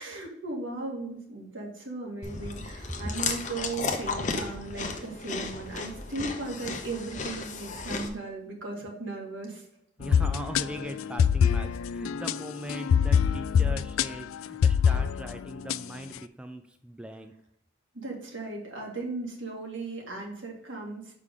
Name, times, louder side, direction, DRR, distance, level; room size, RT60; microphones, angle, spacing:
voice 1, 0.0-9.7 17.9-21.2, right 3 dB, 70° right, 0 dB, 1.8 m, -37 dB
Chewing mastication, 2.2-8.1, left 4 dB, 35° left, 0.7 m, -34 dB
sound 1, 10.0-15.8, left 7 dB, 85° left, 0.3 m, -25 dB
voice 2, 10.0-17.3, equal, 5° right, 6 dB, 0.3 m, -39 dB
6.6 x 5.0 x 3.6 m, 0.73 s
head